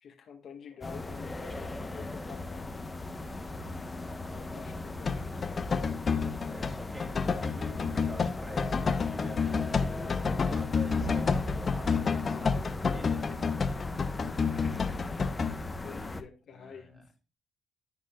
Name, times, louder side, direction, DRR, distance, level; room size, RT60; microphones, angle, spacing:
voice 1, 0.0-3.5 4.3-5.8 6.0-6.6 13.6-13.9 14.6-15.3 15.8-17.1, left 6 dB, 60° left, 1.8 m, -50 dB
sound 1, 0.8-16.2, left 2 dB, 20° left, 1.1 m, -38 dB
sound 2, 5.0-15.6, left 5 dB, 40° left, 0.8 m, -30 dB
voice 2, 6.5-12.6 12.9-13.2 13.9-14.2 16.5-17.0, equal, 5° right, 2.8 m, -46 dB
13.5 x 5.3 x 2.4 m
cardioid pair, 90°, 0 cm